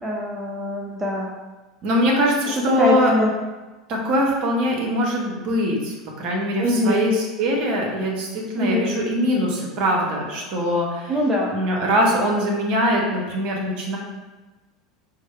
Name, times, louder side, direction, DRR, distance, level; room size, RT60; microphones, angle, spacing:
voice 1, 0.0-1.3 2.6-3.3 6.6-7.2 8.6-8.9 11.1-11.5, left 1 dB, 10° right, -2 dB, 0.6 m, -23 dB
voice 2, 1.8-3.1 3.9-11.1 11.5-14.0, equal, 45° right, -1 dB, 1.0 m, -22 dB
4.7 x 2.2 x 4.4 m, 1.2 s
figure-of-eight pair, 80°, 3 cm